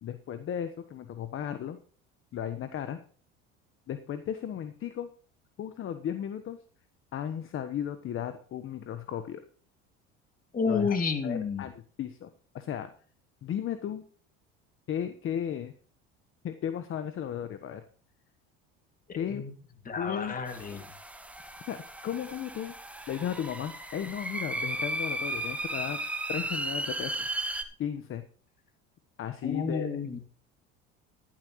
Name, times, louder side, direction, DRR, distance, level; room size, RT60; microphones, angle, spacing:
voice 1, 0.0-1.8 2.3-3.0 3.9-5.1 5.6-6.6 7.1-9.4 10.7-11.0 11.2-12.3 12.5-12.9 13.4-14.0 14.9-15.7 16.4-17.8 19.1-19.4 20.0-20.4 21.7-22.7 23.1-26.0 26.3-27.3 27.8-28.2 29.2-30.2, left 9 dB, 45° left, 10 dB, 1.2 m, -35 dB
voice 2, 10.5-11.6 19.1-19.5 19.9-20.8 29.4-30.2, left 5 dB, 30° left, 7 dB, 2.5 m, -30 dB
sound 1, 20.5-27.6, right 1 dB, 5° right, 1.7 m, -35 dB
13.5 x 12.0 x 3.2 m, 0.43 s
supercardioid pair, 95°, 29 cm